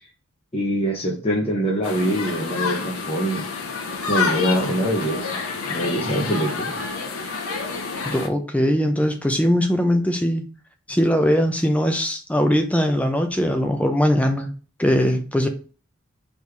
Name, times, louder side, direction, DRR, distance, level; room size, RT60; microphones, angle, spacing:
voice 1, 0.5-3.5 4.1-6.8, equal, 25° left, -3 dB, 0.8 m, -24 dB
sound 1, 1.8-8.3, left 4 dB, 80° left, 0.7 m, -28 dB
voice 2, 8.1-10.4 10.9-14.5 14.8-15.5, equal, 5° left, 5 dB, 0.5 m, -20 dB
4.2 x 3.1 x 3.3 m, 0.38 s
head